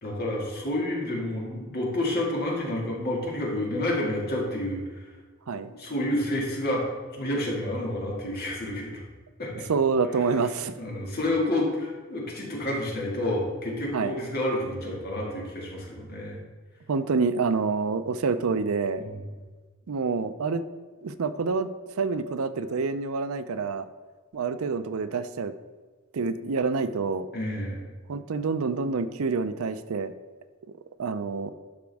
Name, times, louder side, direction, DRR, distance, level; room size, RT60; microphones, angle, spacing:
voice 1, 0.0-4.8 5.7-6.9 7.2-9.0 9.4-9.6 10.8-16.4 19.0-19.2 27.3-27.9, left 1 dB, 50° left, -2 dB, 2.0 m, -29 dB
voice 2, 9.7-10.8 13.9-14.2 16.9-19.0 19.9-20.6 21.0-21.7 22.0-23.9 24.3-25.5 26.1-27.3 28.1-30.1 31.0-31.5, right 4 dB, 80° right, 12 dB, 0.5 m, -27 dB
12.0 x 5.1 x 3.5 m, 1.4 s
head